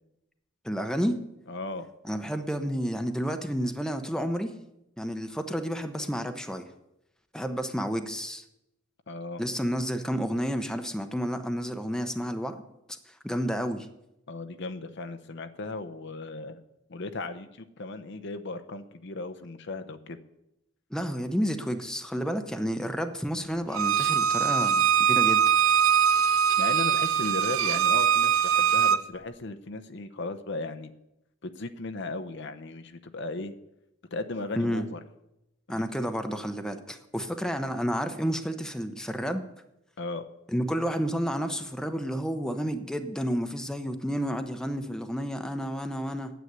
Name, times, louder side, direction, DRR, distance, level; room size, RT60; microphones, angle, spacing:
voice 1, 0.6-1.2 2.0-4.5 5.0-6.7 7.3-8.4 9.4-12.6 13.1-13.9 20.9-25.5 34.6-34.8 35.7-39.4 40.5-46.3, equal, 5° left, 7 dB, 0.8 m, -30 dB
voice 2, 1.5-1.9 9.1-9.4 14.3-16.6 16.9-20.2 26.6-30.9 31.4-33.5 34.1-35.0 35.7-35.8 40.0-40.3, left 3 dB, 60° left, 8 dB, 0.8 m, -36 dB
Bowed string instrument, 23.7-29.0, right 8 dB, 85° right, 0.7 m, -22 dB
9.4 x 8.2 x 9.5 m, 0.86 s
head